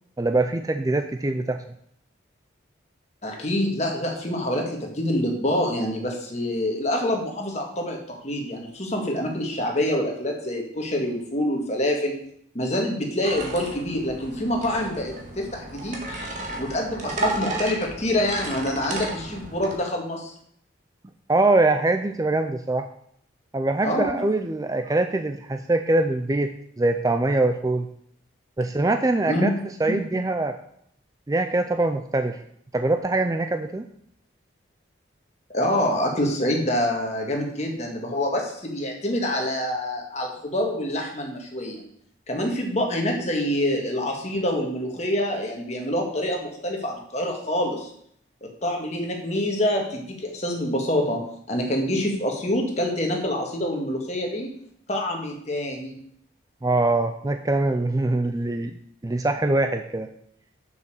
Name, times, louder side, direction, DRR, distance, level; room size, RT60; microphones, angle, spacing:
voice 1, 0.2-1.6 21.3-22.9 23.5-27.9 28.6-29.5 29.8-30.6 31.3-32.4 32.7-33.9 56.6-60.1, right 2 dB, 20° right, 8 dB, 0.4 m, -23 dB
voice 2, 3.2-12.2 12.5-20.3 23.8-24.2 29.3-29.5 29.9-30.0 35.5-41.8 42.3-47.9 48.4-51.2 51.5-54.5 54.9-56.0, left 1 dB, 35° left, 1 dB, 1.8 m, -26 dB
sound 1, 13.2-19.7, right 2 dB, 40° right, 1.6 m, -33 dB
6.8 x 6.7 x 6.6 m, 0.68 s
head